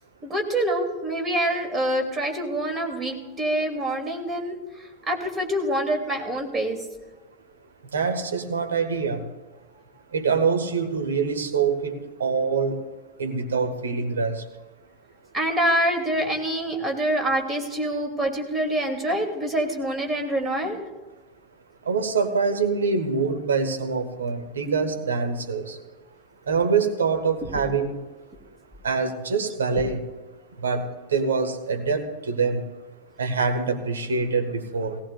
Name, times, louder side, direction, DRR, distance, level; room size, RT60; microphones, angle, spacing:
voice 1, 0.3-4.6 5.1-6.8 15.3-20.8, right 1 dB, 15° right, 2.5 m, -25 dB
voice 2, 7.9-9.2 10.1-12.8 13.2-14.4 21.9-25.8 26.5-28.0 28.8-30.0 30.6-32.6 33.2-35.0, right 5 dB, 70° right, 1.4 m, -25 dB
18.0 x 18.0 x 2.3 m
figure-of-eight pair, 90°, 0 cm